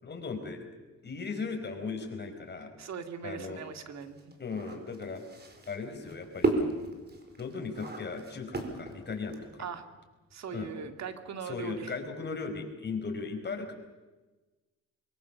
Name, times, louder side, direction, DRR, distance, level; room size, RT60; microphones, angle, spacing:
voice 1, 0.0-0.7 1.0-2.7 3.2-3.6 4.4-5.2 5.7-6.7 7.4-9.6 10.5-10.7 11.4-13.7, left 4 dB, 35° left, 4 dB, 5.1 m, -37 dB
voice 2, 2.8-4.3 9.6-9.9 10.3-11.9, right 6 dB, 60° right, 7 dB, 2.2 m, -40 dB
sound 1, 3.4-9.6, right 3 dB, 35° right, 4.6 m, -34 dB
24.0 x 22.5 x 7.1 m, 1.2 s
cardioid pair, 90°, 30 cm